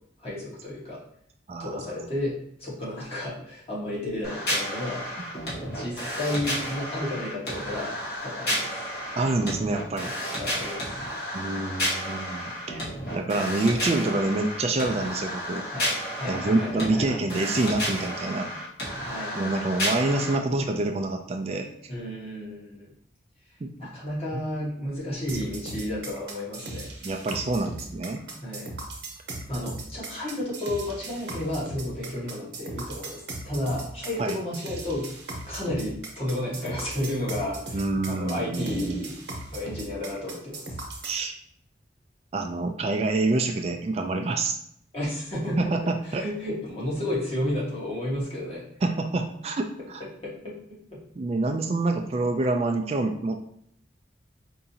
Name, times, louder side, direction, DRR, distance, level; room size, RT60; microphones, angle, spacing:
voice 1, 0.2-1.0 1.6-5.1 5.6-8.8 10.4-11.0 15.7-17.1 19.1-19.7 21.9-22.9 23.8-26.9 28.4-28.7 29.5-35.1 35.5-37.8 38.1-39.2 39.5-40.8 44.9-45.6 46.0-48.6 50.2-51.0, left 1 dB, 35° left, -7 dB, 1.4 m, -32 dB
voice 2, 1.5-2.1 9.2-10.2 11.3-12.8 13.1-15.6 16.3-18.5 19.4-21.7 23.6-23.7 24.3-24.4 27.0-28.2 34.2-34.4 37.7-39.0 41.0-41.4 42.3-44.5 45.6-46.3 48.8-50.0 51.2-53.4, right 2 dB, 35° right, 4 dB, 0.3 m, -27 dB
sound 1, 4.2-20.4, equal, 60° left, 1.5 m, -32 dB
sound 2, 25.3-41.2, right 2 dB, 80° right, 0.9 m, -38 dB
4.7 x 2.6 x 2.7 m, 0.67 s
head